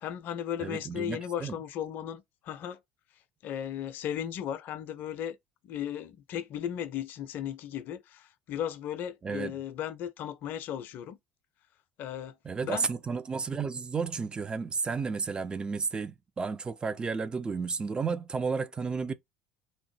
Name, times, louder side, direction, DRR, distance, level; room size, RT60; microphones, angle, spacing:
voice 1, 0.0-2.8 3.4-5.4 5.6-11.2 12.0-12.3 12.6-12.9, left 10 dB, 50° left, 0.5 m, -36 dB
voice 2, 0.6-1.6 9.2-9.6 12.4-19.1, right 5 dB, 20° right, 0.4 m, -32 dB
2.7 x 2.0 x 3.1 m
figure-of-eight pair, 65°, 4 cm